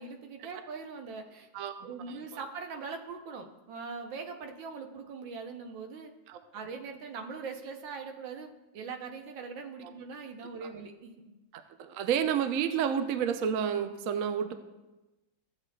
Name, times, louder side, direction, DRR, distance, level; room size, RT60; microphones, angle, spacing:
voice 1, 0.0-1.5 1.8-6.1 6.5-11.4, right 5 dB, 85° right, 5 dB, 1.6 m, -41 dB
voice 2, 1.5-1.9 6.3-6.4 9.8-9.9 10.6-10.7 11.5-14.5, right 8 dB, 65° right, 8 dB, 0.8 m, -30 dB
14.0 x 8.0 x 2.3 m, 1.1 s
omnidirectional pair, 2.0 m